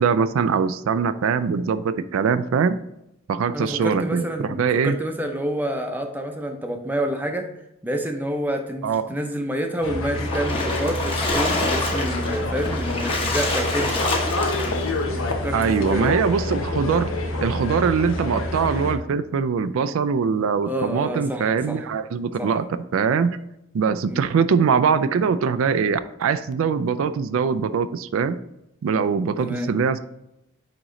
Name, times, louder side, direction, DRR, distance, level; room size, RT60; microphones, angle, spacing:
voice 1, 0.0-2.8 3.3-5.0 8.8-9.1 15.5-17.1 17.4-22.7 22.9-23.4 23.7-28.4 28.8-30.0, right 6 dB, 85° right, 13 dB, 0.3 m, -22 dB
voice 2, 3.5-7.5 7.8-14.1 15.1-16.1 20.7-21.8 22.4-22.5 24.1-24.3 29.4-29.7, equal, 10° right, 4 dB, 0.6 m, -28 dB
sound 1, 9.8-18.9, left 2 dB, 80° left, 1.0 m, -27 dB
Splash splatter, 10.1-15.0, left 2 dB, 25° left, 1.0 m, -26 dB
8.7 x 3.1 x 3.7 m, 0.84 s
head